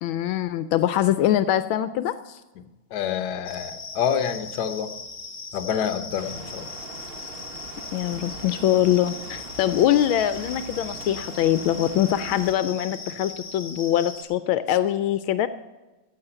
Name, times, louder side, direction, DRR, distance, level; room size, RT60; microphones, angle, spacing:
voice 1, 0.0-2.4 7.9-15.5, left 12 dB, 80° left, 13 dB, 1.4 m, -23 dB
voice 2, 2.9-4.9 5.5-6.7, left 8 dB, 60° left, 9 dB, 1.3 m, -27 dB
sound 1, 3.4-14.2, left 4 dB, 30° left, 1.5 m, -39 dB
sound 2, 6.2-12.5, right 3 dB, 35° right, 1.1 m, -41 dB
14.5 x 7.9 x 8.0 m, 1.1 s
omnidirectional pair, 2.2 m